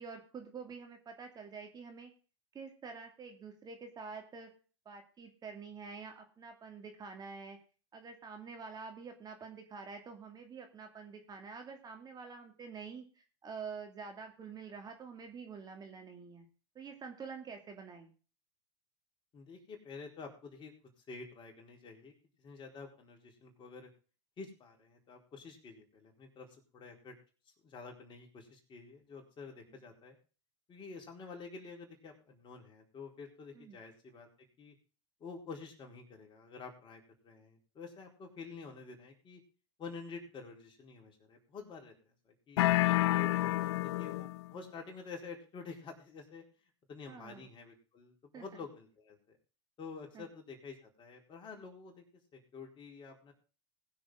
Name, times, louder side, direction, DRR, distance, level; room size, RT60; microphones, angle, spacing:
voice 1, 0.0-2.1 2.5-4.5 4.9-7.6 7.9-16.5 16.7-18.1 29.7-29.8 33.5-33.8 43.4-43.5 47.1-47.5 48.3-48.4 50.1-50.3, right 5 dB, 25° right, 4 dB, 2.5 m, -47 dB
voice 2, 19.3-20.7 21.1-23.9 24.4-26.5 26.7-27.1 27.6-30.2 30.7-34.3 34.6-34.7 35.2-39.4 39.8-41.9 42.3-42.6 43.2-46.4 46.9-49.2 49.8-52.0 52.3-53.3, left 4 dB, 35° left, 1 dB, 4.2 m, -49 dB
sound 1, 42.6-44.5, left 17 dB, 65° left, 0.5 m, -29 dB
20.0 x 6.9 x 3.8 m, 0.36 s
hypercardioid pair, 100°, 15 cm